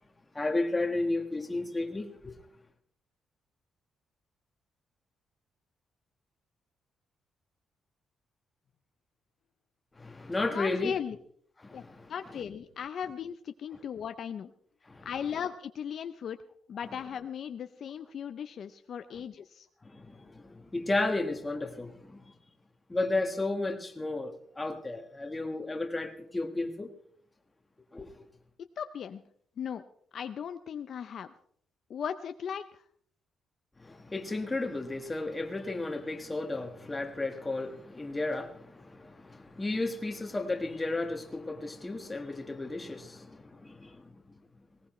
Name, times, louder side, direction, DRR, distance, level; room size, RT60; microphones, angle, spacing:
voice 1, 0.3-2.4 9.9-10.9 11.6-12.1 14.9-15.1 19.8-22.3 22.9-26.9 27.9-28.3 33.8-44.4, left 2 dB, 15° left, 1.4 m, -33 dB
voice 2, 10.5-11.2 11.7-11.8 12.1-14.5 15.0-16.4 16.7-19.7 28.8-29.2 29.6-29.8 30.1-31.3 31.9-32.8, left 8 dB, 50° left, 0.5 m, -37 dB
19.5 x 18.5 x 3.1 m
cardioid pair, 165°, 0 cm